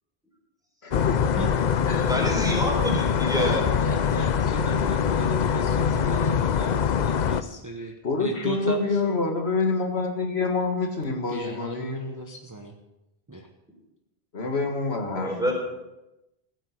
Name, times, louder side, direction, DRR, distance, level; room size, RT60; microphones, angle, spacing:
voice 1, 0.8-1.3 1.9-2.1 8.0-12.1 14.3-15.5, left 3 dB, 85° left, 4 dB, 1.9 m, -27 dB
sound 1, 0.9-7.4, left 7 dB, 50° left, 0.6 m, -23 dB
voice 2, 2.1-3.6 15.1-15.5, equal, 5° right, -2 dB, 4.2 m, -27 dB
voice 3, 3.4-9.0 11.3-12.7 13.3-13.5, right 2 dB, 20° right, 2 dB, 1.0 m, -36 dB
16.0 x 9.0 x 6.5 m, 0.95 s
omnidirectional pair, 1.0 m